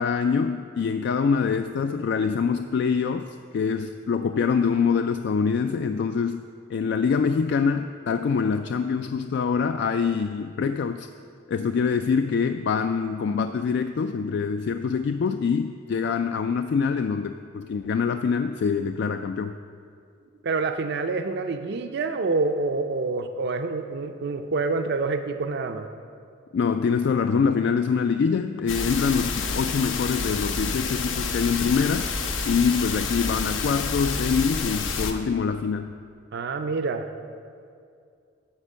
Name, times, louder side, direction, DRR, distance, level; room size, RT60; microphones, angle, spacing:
voice 1, 0.0-3.3 3.5-6.4 6.7-11.1 11.5-19.5 26.5-32.1 32.5-35.9, left 5 dB, 60° left, 8 dB, 0.3 m, -24 dB
voice 2, 20.4-25.9 36.3-37.1, right 3 dB, 60° right, 7 dB, 0.4 m, -27 dB
sound 1, 28.7-35.1, left 4 dB, 85° left, 0.8 m, -29 dB
12.0 x 4.3 x 7.3 m, 2.4 s
head